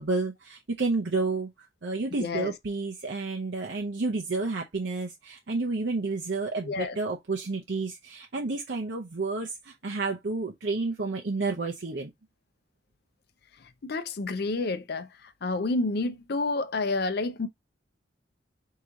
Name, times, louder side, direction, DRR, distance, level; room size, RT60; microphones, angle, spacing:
voice 1, 0.0-12.1, right 3 dB, 70° right, 0.7 m, -30 dB
voice 2, 2.2-2.5 6.7-6.9 13.8-15.1 15.4-17.5, left 3 dB, 60° left, 0.5 m, -29 dB
4.7 x 2.9 x 3.6 m
head